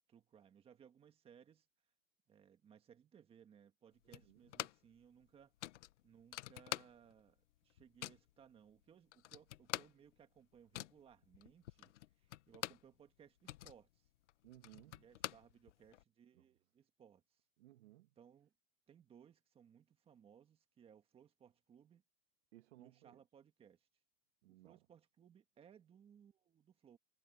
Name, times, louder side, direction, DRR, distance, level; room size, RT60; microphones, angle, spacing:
voice 1, 0.1-1.7 2.3-5.5 6.0-14.1 15.0-17.4 18.2-18.5 18.9-22.0 22.8-23.9 24.5-27.0, right 8 dB, 15° right, 1.7 m, -64 dB
voice 2, 4.0-4.4 14.4-15.1 16.3-16.4 17.6-18.1 22.5-23.2 24.4-24.8, right 16 dB, 60° right, 2.2 m, -61 dB
sound 1, 4.1-5.0 5.2-5.3 5.6-7.3 7.6-8.3 8.8-8.9 9.1-12.9 13.3-16.0, left 14 dB, 70° left, 1.4 m, -47 dB
supercardioid pair, 160°, 37 cm